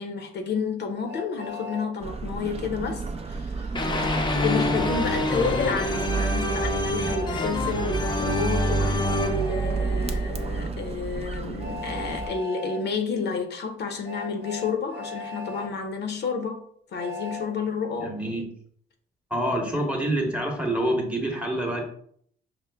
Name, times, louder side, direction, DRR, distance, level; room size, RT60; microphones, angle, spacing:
voice 1, 0.0-3.8 4.4-16.6 16.9-18.2, left 5 dB, 60° left, 0.7 m, -30 dB
Train, 1.1-1.9 3.9-4.9 7.0-7.3 9.4-9.5 11.6-12.8 14.0-15.7 16.9-17.5, left 3 dB, 60° right, 1.0 m, -37 dB
sound 1, 2.0-12.3, right 4 dB, 30° right, 0.5 m, -31 dB
sound 2, 3.7-10.7, left 1 dB, 25° left, 0.6 m, -27 dB
voice 2, 18.0-18.5 19.3-21.8, right 1 dB, 5° right, 1.0 m, -26 dB
5.0 x 2.1 x 3.3 m
cardioid pair, 90°, 20 cm